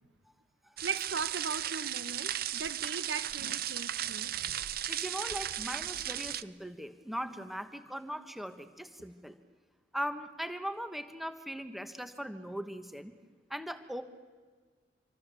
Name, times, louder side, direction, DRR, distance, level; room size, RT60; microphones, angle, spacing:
sound 1, 0.8-6.4, right 11 dB, 55° right, 0.6 m, -36 dB
voice 1, 0.8-4.7, right 5 dB, 75° right, 1.1 m, -39 dB
voice 2, 4.9-9.4 9.9-13.1 13.5-14.0, equal, ahead, 1.2 m, -39 dB
26.5 x 25.5 x 7.0 m
head